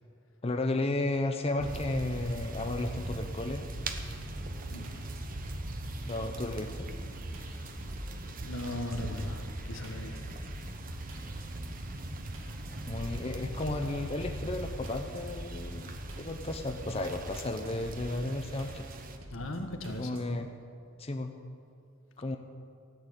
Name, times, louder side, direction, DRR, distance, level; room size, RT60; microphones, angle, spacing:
voice 1, 0.4-3.7 6.1-6.9 12.9-18.8 19.9-20.5 21.0-21.3 22.2-22.4, left 2 dB, 30° left, 5 dB, 0.7 m, -33 dB
sound 1, 1.6-19.2, right 1 dB, 45° right, 1.0 m, -40 dB
sound 2, 3.7-20.3, equal, 80° right, 2.1 m, -48 dB
voice 2, 8.4-10.3 19.3-20.3, left 1 dB, 80° left, 5 dB, 1.4 m, -38 dB
13.5 x 8.7 x 8.4 m, 2.3 s
head